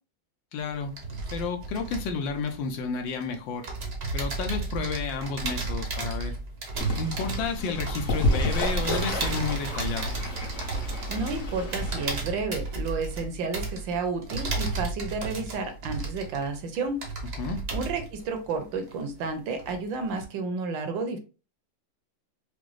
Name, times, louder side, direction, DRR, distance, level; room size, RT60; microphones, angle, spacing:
voice 1, 0.5-0.9 1.3-3.7 4.1-6.3 7.0-10.1 17.4-17.6, left 5 dB, 75° left, 5 dB, 1.4 m, -31 dB
sound 1, 0.6-3.2 3.6-19.3 19.6-20.2, right 3 dB, 50° right, 0.8 m, -33 dB
Fowl / Bird, 6.7-12.2, left 1 dB, 45° left, 1.2 m, -31 dB
voice 2, 11.1-17.0 17.7-21.2, right 4 dB, 75° right, 7 dB, 1.4 m, -31 dB
5.0 x 2.0 x 3.1 m, 0.33 s
omnidirectional pair, 2.1 m